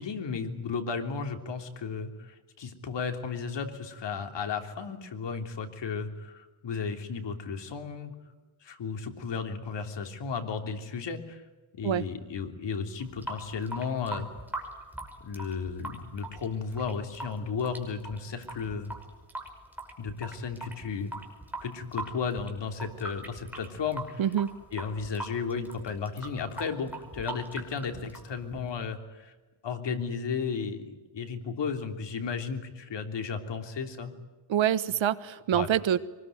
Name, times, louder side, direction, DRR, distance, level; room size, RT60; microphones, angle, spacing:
voice 1, 0.0-8.1 8.6-11.4 11.8-14.3 15.2-18.9 20.0-21.1 21.6-24.2 24.7-29.3 29.6-34.1 35.5-35.7, left 5 dB, 60° left, 6 dB, 3.3 m, -34 dB
Water tap faucet / Sink (filling or washing) / Drip, 13.0-28.9, right 2 dB, 5° right, 5.5 m, -41 dB
voice 2, 24.2-24.5 34.5-36.0, right 10 dB, 70° right, 14 dB, 1.3 m, -26 dB
24.5 x 21.0 x 9.4 m, 1.2 s
cardioid pair, 130°, 48 cm